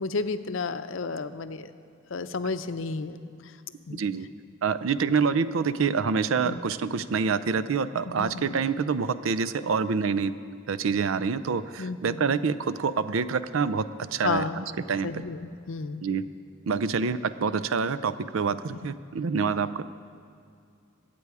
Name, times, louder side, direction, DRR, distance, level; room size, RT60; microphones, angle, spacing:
voice 1, 0.0-1.7 2.1-3.6 3.9-4.0 6.4-6.6 8.2-8.6 11.8-12.3 14.2-14.6 15.0-16.0 18.7-18.8 19.5-19.6, left 4 dB, 75° left, 11 dB, 0.6 m, -32 dB
voice 2, 3.9-4.3 4.6-10.3 10.7-13.8 14.1-15.2 16.0-16.2 16.7-19.8, right 5 dB, 85° right, 15 dB, 0.5 m, -26 dB
22.5 x 8.5 x 4.8 m, 2.4 s
head